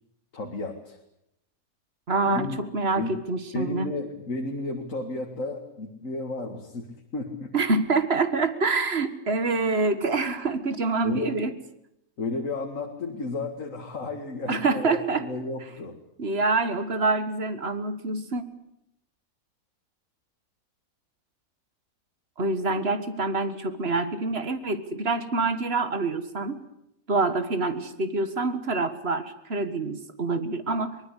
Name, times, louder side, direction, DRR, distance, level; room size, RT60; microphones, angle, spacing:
voice 1, 0.3-1.0 2.3-2.6 3.0-3.1 3.5-7.5 11.0-11.3 12.2-16.0, left 2 dB, 60° left, 3 dB, 2.4 m, -33 dB
voice 2, 2.1-3.9 7.5-11.5 14.5-15.3 16.2-18.4 22.4-26.6 27.1-31.0, right 3 dB, 45° right, 11 dB, 1.8 m, -26 dB
23.5 x 20.0 x 8.3 m, 0.81 s
omnidirectional pair, 1.5 m